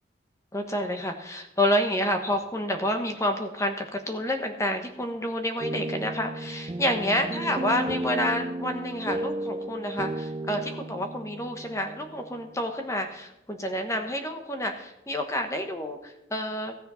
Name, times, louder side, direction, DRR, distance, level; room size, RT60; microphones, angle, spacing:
voice 1, 0.5-16.8, left 1 dB, 15° left, 5 dB, 1.1 m, -29 dB
sound 1, 5.6-12.5, right 1 dB, 25° right, 0.3 m, -34 dB
15.5 x 6.6 x 5.6 m, 0.87 s
head